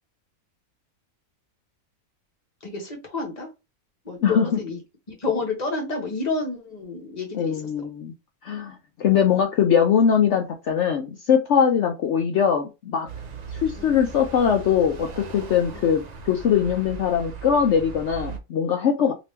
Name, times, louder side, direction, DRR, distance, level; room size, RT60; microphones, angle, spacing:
voice 1, 2.6-3.5 4.0-4.8 5.1-7.6 13.8-13.9 15.7-15.8 19.0-19.1, left 3 dB, 30° left, 0 dB, 1.2 m, -29 dB
voice 2, 4.2-4.6 7.3-8.1 8.4-13.1 13.5-19.1, left 7 dB, 65° left, 4 dB, 0.8 m, -21 dB
sound 1, 13.1-18.4, right 5 dB, 60° right, 0.4 m, -38 dB
2.9 x 2.9 x 3.3 m, 0.25 s
omnidirectional pair, 1.5 m